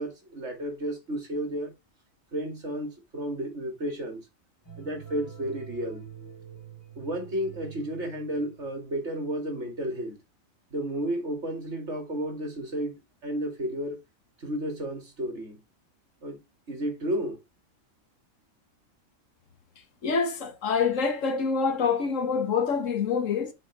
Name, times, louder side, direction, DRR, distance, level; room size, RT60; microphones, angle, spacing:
voice 1, 0.0-1.7 2.3-4.2 4.8-6.0 7.0-10.2 10.7-14.0 14.4-15.6 16.2-16.4 16.7-17.4, right 1 dB, 60° right, 2.6 m, -32 dB
sound 1, 4.6-8.7, right 9 dB, 15° left, 2.2 m, -46 dB
voice 2, 20.0-23.5, left 5 dB, 70° left, 1.5 m, -26 dB
6.5 x 4.1 x 4.6 m
omnidirectional pair, 1.4 m